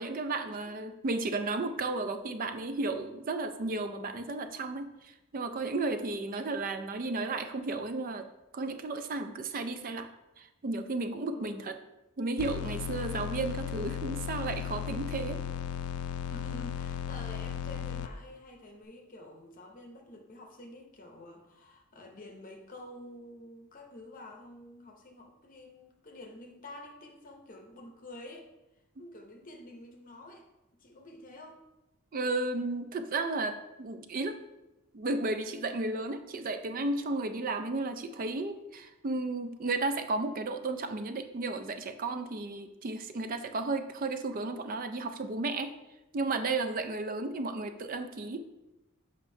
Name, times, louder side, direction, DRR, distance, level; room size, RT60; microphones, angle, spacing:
voice 1, 0.0-8.3 8.5-10.1 10.4-11.7 12.2-15.4 32.1-34.4 34.9-45.8 46.1-48.4, right 3 dB, 40° right, 8 dB, 0.4 m, -33 dB
sound 1, 12.4-18.1, left 8 dB, 75° left, 0.3 m, -36 dB
voice 2, 16.3-28.5 29.0-30.5 30.7-31.6, left 1 dB, 35° left, 2 dB, 0.7 m, -49 dB
7.4 x 5.1 x 2.7 m, 0.96 s
head